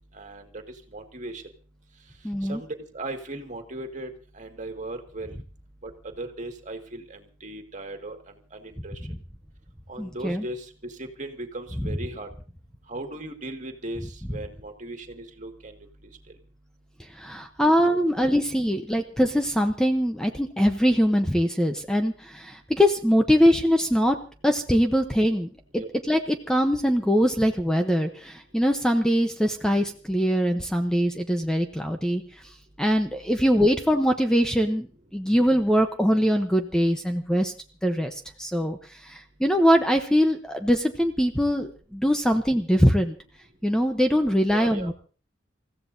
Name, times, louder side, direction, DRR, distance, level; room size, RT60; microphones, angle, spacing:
voice 1, 0.1-0.6 0.9-1.4 2.5-5.3 5.8-5.9 6.2-8.2 8.5-8.9 9.9-12.3 12.9-15.8 25.8-25.9 44.5-44.9, right 2 dB, 40° right, 4 dB, 2.0 m, -37 dB
voice 2, 2.2-2.6 10.0-10.4 17.1-24.2 24.4-32.2 32.8-37.5 37.8-38.8 39.0-43.2 43.6-44.9, equal, 5° left, 5 dB, 0.9 m, -22 dB
28.0 x 15.5 x 2.7 m, 0.38 s
head